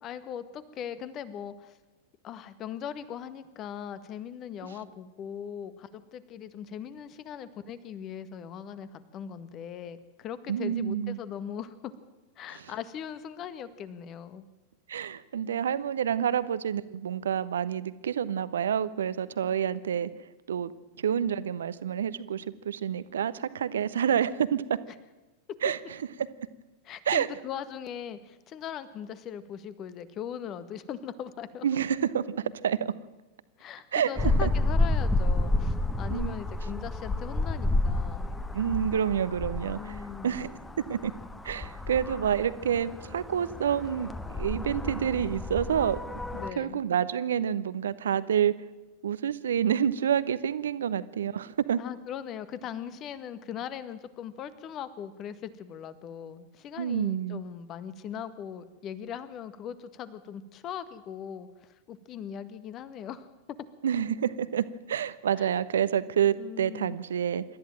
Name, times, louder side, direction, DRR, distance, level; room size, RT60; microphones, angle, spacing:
voice 1, 0.0-1.7 2.2-11.9 12.4-14.4 26.8-31.8 33.6-38.3 39.8-40.4 46.3-46.8 51.8-63.3 65.4-65.5 66.4-67.0, left 8 dB, 35° left, 14 dB, 1.7 m, -40 dB
voice 2, 10.5-11.2 12.5-12.6 14.9-20.1 20.5-20.7 21.0-24.8 25.6-25.8 27.1-27.3 31.6-32.9 33.9-34.1 34.4-34.5 36.1-36.4 38.5-40.0 40.2-40.6 40.9-41.1 41.4-46.0 46.6-48.5 49.0-51.8 56.8-57.4 63.8-67.4, right 8 dB, 65° right, 16 dB, 1.1 m, -28 dB
sound 1, 34.2-46.5, left 2 dB, 10° left, 1.4 m, -30 dB
27.0 x 13.5 x 9.0 m, 1.2 s
figure-of-eight pair, 90°, 0 cm